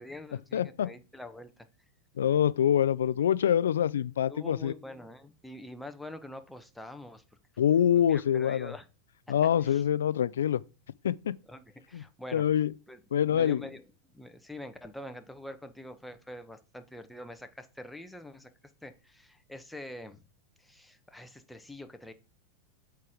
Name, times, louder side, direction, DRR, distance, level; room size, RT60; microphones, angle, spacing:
voice 1, 0.0-1.7 4.3-7.2 7.5-7.7 7.9-8.9 9.6-9.8 11.4-12.4 12.9-18.5 18.8-20.2 20.6-22.1, left 1 dB, 5° left, 1.1 m, -45 dB
voice 2, 0.5-0.9 2.2-4.7 7.6-8.7 9.3-10.6 11.0-11.3 11.9-12.0 12.3-12.7 13.1-13.6, left 9 dB, 90° left, 0.4 m, -25 dB
8.1 x 4.6 x 5.0 m
hypercardioid pair, 120°, 0 cm